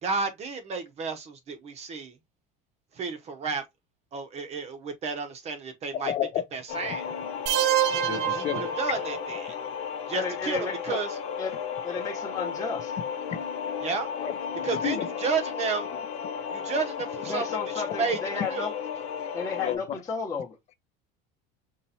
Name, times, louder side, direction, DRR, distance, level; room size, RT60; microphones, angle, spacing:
voice 1, 0.0-2.2 3.0-3.6 4.1-6.1 6.5-7.1 7.9-9.6 10.1-11.2 13.8-14.1 14.6-15.9 16.5-17.4 17.7-18.2 18.5-18.7, right 4 dB, 30° right, 0.8 m, -32 dB
voice 2, 5.9-6.5 6.9-7.0 8.0-8.7 13.3-13.4 14.2-15.1 19.6-19.8, left 10 dB, 35° left, 0.5 m, -31 dB
sound 1, 6.7-19.8, left 7 dB, 75° left, 0.9 m, -34 dB
sound 2, 7.5-9.4, right 15 dB, 60° right, 0.6 m, -27 dB
voice 3, 10.1-11.0 11.4-11.6 11.8-12.9 17.3-18.7 19.3-20.6, left 5 dB, 15° left, 0.9 m, -33 dB
5.5 x 3.0 x 2.7 m
cardioid pair, 155°, 20 cm